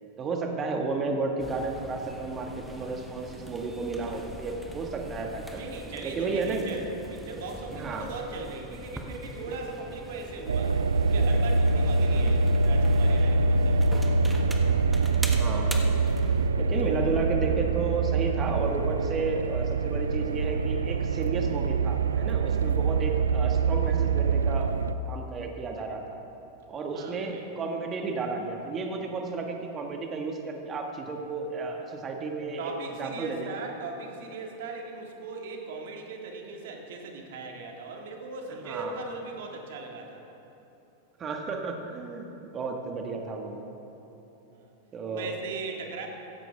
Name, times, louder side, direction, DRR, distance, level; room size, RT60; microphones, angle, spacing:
voice 1, 0.2-5.6 6.0-6.6 7.7-8.1 12.1-12.4 15.4-15.7 16.6-24.7 25.1-26.2 26.7-32.7 33.0-33.5 38.6-39.0 41.2-43.6 44.9-45.3, right 3 dB, 25° right, 2 dB, 1.8 m, -32 dB
sound 1, 1.4-16.5, right 1 dB, 5° right, 1.3 m, -42 dB
voice 2, 5.5-10.8 11.1-13.9 26.9-27.5 31.5-32.0 32.6-40.2 44.5-44.7 45.1-46.1, right 3 dB, 55° right, 1 dB, 2.0 m, -39 dB
sound 2, 10.5-24.9, right 3 dB, 70° right, 0.4 m, -24 dB
16.0 x 15.5 x 3.6 m, 3.0 s
figure-of-eight pair, 90°, 0 cm